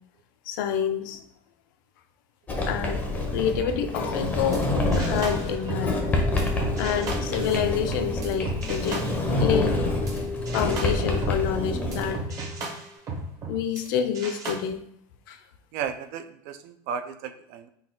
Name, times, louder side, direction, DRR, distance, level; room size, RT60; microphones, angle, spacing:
voice 1, 0.5-1.2 2.7-3.0 3.3-4.7 5.0-6.2 6.8-9.8 10.5-12.2 13.5-14.8 15.3-15.4, left 8 dB, 80° left, 8 dB, 0.4 m, -28 dB
Sliding door, 2.5-12.1, left 2 dB, 15° left, 0.5 m, -27 dB
sound 1, 4.2-10.2 10.4-13.9 14.1-14.5, right 2 dB, 30° right, 0.8 m, -35 dB
sound 2, 5.7-12.9, left 5 dB, 80° right, 1.2 m, -38 dB
voice 2, 15.7-17.7, right 7 dB, 60° right, 9 dB, 0.4 m, -34 dB
3.9 x 2.3 x 3.7 m, 0.72 s
cardioid pair, 150°, 11 cm